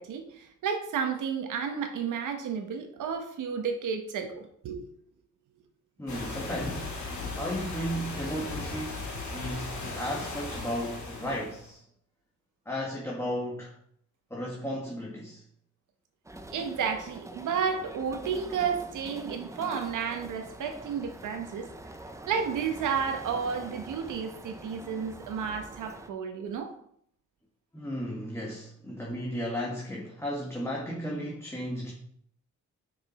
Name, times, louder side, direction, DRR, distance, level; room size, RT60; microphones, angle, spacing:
voice 1, 0.0-4.8 16.5-21.7 22.3-26.7, right 6 dB, 85° right, 1.3 m, -32 dB
voice 2, 6.0-6.9 7.3-11.8 12.6-13.7 14.3-15.4 27.7-31.9, equal, 10° left, 1.5 m, -34 dB
sound 1, 6.1-11.6, left 3 dB, 70° left, 2.5 m, -37 dB
sound 2, 16.2-26.1, right 1 dB, 10° right, 0.7 m, -45 dB
6.1 x 5.2 x 4.3 m
cardioid pair, 90°, 30 cm